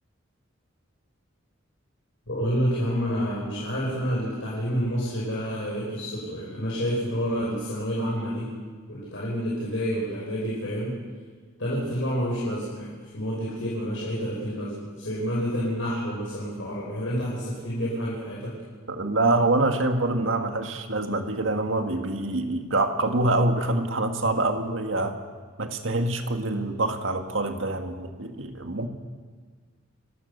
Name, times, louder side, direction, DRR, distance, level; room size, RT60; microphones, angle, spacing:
voice 1, 2.3-8.5 8.9-11.0 11.6-18.5, equal, 70° left, -5 dB, 5.5 m, -29 dB
voice 2, 18.9-25.1 25.6-28.9, right 2 dB, 75° right, 5 dB, 1.8 m, -25 dB
29.0 x 14.0 x 6.7 m, 1.5 s
head